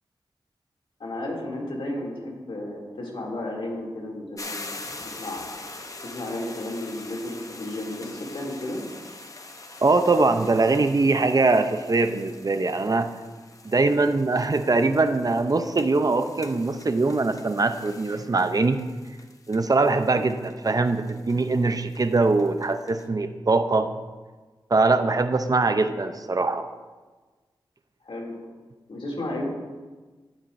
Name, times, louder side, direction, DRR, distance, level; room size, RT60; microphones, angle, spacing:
voice 1, 1.0-4.7 5.0-5.6 6.0-8.8 20.1-20.4 28.0-28.3 28.9-29.4, left 1 dB, 70° left, -2 dB, 2.8 m, -33 dB
sound 1, 4.4-23.1, left 2 dB, 35° left, 0.8 m, -44 dB
voice 2, 9.8-13.1 13.6-18.8 19.5-23.9 24.7-26.7, right 3 dB, 45° right, 9 dB, 0.6 m, -22 dB
18.0 x 7.2 x 2.6 m, 1.3 s
cardioid pair, 55°, 9 cm